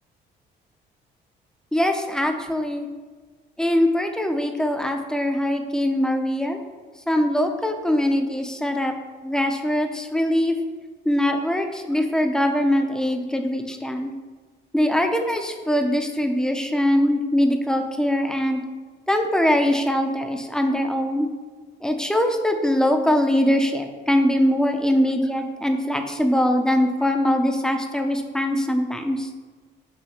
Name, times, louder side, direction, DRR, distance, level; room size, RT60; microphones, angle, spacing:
voice 1, 1.7-2.9 3.6-6.6 7.1-9.0 9.2-10.5 11.0-14.1 14.7-18.6 19.1-21.3 21.8-29.3, left 1 dB, 5° left, 5 dB, 0.4 m, -22 dB
6.2 x 2.7 x 2.9 m, 1.4 s
cardioid pair, 90°, 20 cm